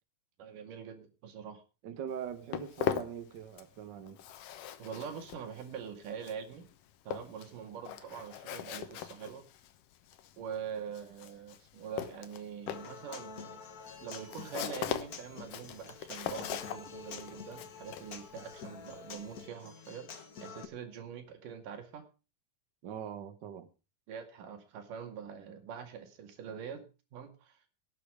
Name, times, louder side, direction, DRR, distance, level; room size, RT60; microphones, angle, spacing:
voice 1, 0.4-1.6 4.8-6.7 7.1-9.4 10.4-13.6 14.0-22.0 24.1-26.8 27.1-27.6, right 7 dB, 80° right, 3.8 m, -44 dB
voice 2, 1.8-4.2 22.8-23.7, right 8 dB, 60° right, 1.2 m, -42 dB
Walk footsteps, 2.1-3.8 4.1-19.5, left 10 dB, 90° left, 2.8 m, -41 dB
Human voice / Acoustic guitar, 12.7-20.6, left 6 dB, 60° left, 0.9 m, -48 dB
18.0 x 8.6 x 5.0 m
omnidirectional pair, 3.7 m